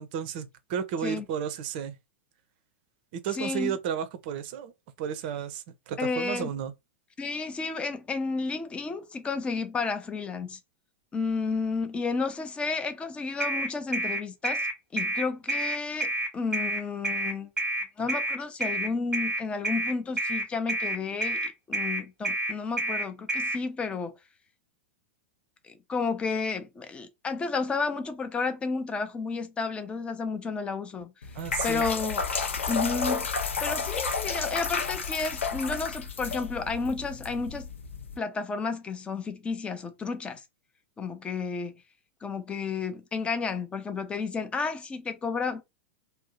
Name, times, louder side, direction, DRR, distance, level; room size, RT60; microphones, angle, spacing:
voice 1, 0.0-2.0 3.1-4.7 5.0-6.7 31.3-31.8, right 8 dB, 50° right, 0.5 m, -33 dB
voice 2, 3.3-3.8 6.0-6.5 7.2-10.6 11.1-17.5 18.0-24.2 25.6-31.1 31.6-32.2 32.7-37.7 38.2-40.4 41.0-41.7 42.2-45.6, left 4 dB, 15° left, 0.5 m, -32 dB
sound 1, 13.4-23.6, right 1 dB, 10° right, 1.0 m, -29 dB
sound 2, 31.2-38.2, left 5 dB, 75° left, 0.5 m, -31 dB
2.7 x 2.0 x 3.8 m
figure-of-eight pair, 95°, 7 cm